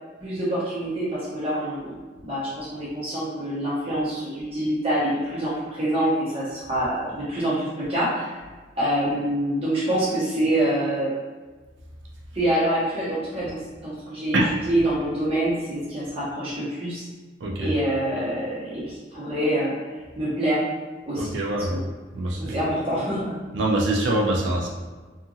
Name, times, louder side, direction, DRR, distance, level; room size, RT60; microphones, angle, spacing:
voice 1, 0.2-8.4 8.8-11.1 12.3-14.4 14.6-17.0 17.6-20.6 21.1-21.3 21.7-21.8 22.4-23.3, right 1 dB, 30° right, -9 dB, 0.8 m, -26 dB
voice 2, 21.2-21.8 22.1-22.6 23.5-24.7, right 1 dB, 70° right, -1 dB, 0.4 m, -24 dB
2.8 x 2.5 x 2.6 m, 1.4 s
head